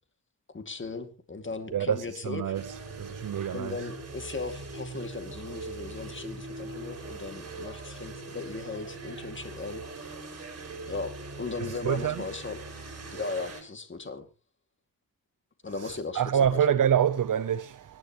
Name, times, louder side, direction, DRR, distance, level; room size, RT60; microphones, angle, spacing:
voice 1, 0.5-2.6 3.5-10.2 10.9-12.6 13.1-14.3 15.6-16.7, left 3 dB, 35° left, 2.4 m, -37 dB
voice 2, 2.3-2.6 3.0-3.7 11.9-12.1 16.2-17.8, right 8 dB, 70° right, 0.8 m, -25 dB
sound 1, 2.5-13.6, right 3 dB, 50° right, 5.1 m, -41 dB
25.5 x 10.5 x 3.1 m
cardioid pair, 75°, 33 cm